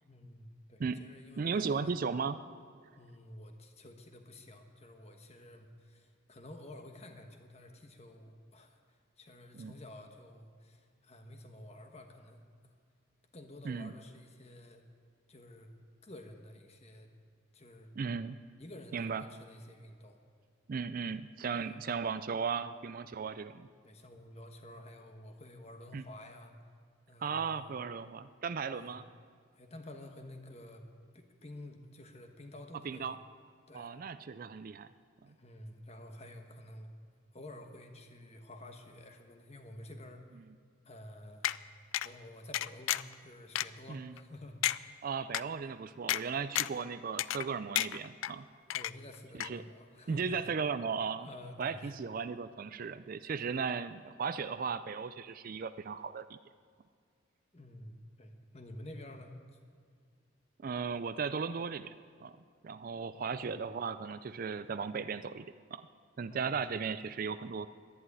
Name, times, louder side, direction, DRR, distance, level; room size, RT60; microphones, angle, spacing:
voice 1, 0.0-1.8 3.0-12.4 13.3-14.8 15.3-15.7 16.0-17.1 17.5-17.9 18.6-20.2 21.6-21.8 23.8-26.5 27.1-27.6 28.7-28.9 29.6-30.8 31.1-33.1 33.7-33.9 35.3-36.9 37.3-40.2 40.8-41.5 42.0-45.0 48.7-50.4 51.2-52.0 57.5-59.3 63.1-63.5 66.3-66.6, left 1 dB, 30° left, 5 dB, 1.2 m, -51 dB
voice 2, 1.4-2.4 9.5-9.7 13.6-13.9 18.0-18.4 18.9-19.3 20.7-23.7 25.9-26.0 27.2-29.0 32.8-33.2 33.7-34.9 43.9-44.1 45.0-48.4 49.4-49.6 50.1-51.3 51.6-56.4 60.6-62.0 62.2-62.4 62.6-65.4 65.7-65.8 66.2-67.7, right 5 dB, 45° right, 13 dB, 0.4 m, -36 dB
sound 1, 41.4-41.6 41.9-42.1 42.5-43.1 43.5-43.7 44.2-44.3 44.6-44.8 45.3-45.4 46.1-46.2 46.5-46.8 47.2-47.5 47.7-48.3 48.7-49.1 49.4-49.5, left 13 dB, 75° left, 0.3 m, -31 dB
11.0 x 11.0 x 9.7 m, 2.1 s
head